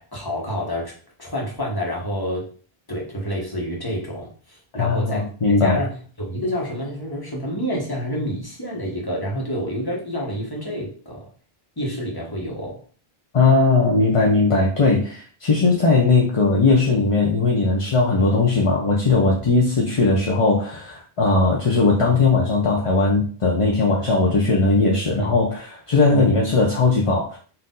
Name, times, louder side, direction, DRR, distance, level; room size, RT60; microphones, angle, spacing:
voice 1, 0.0-2.5 2.9-11.3 11.8-12.8 25.1-25.3 26.1-26.4, equal, 20° left, -2 dB, 1.2 m, -28 dB
voice 2, 4.8-5.8 13.3-27.4, left 3 dB, 35° left, -2 dB, 0.6 m, -18 dB
4.2 x 2.6 x 3.8 m, 0.41 s
omnidirectional pair, 1.1 m